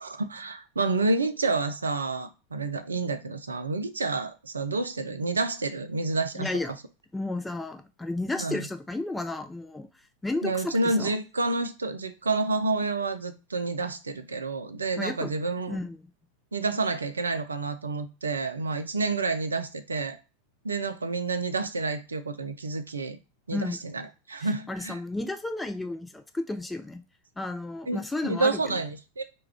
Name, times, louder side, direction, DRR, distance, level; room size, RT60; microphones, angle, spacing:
voice 1, 0.0-6.5 8.4-8.7 10.4-15.8 16.5-20.2 20.6-23.2 23.5-25.0 27.9-29.2, right 3 dB, 75° right, 0.3 m, -29 dB
voice 2, 6.4-6.7 7.1-9.9 10.2-11.1 15.0-15.3 15.7-16.0 23.5-23.8 24.7-27.0 27.4-28.8, left 2 dB, 10° left, 0.4 m, -32 dB
2.3 x 2.2 x 3.3 m
figure-of-eight pair, 90°, 0 cm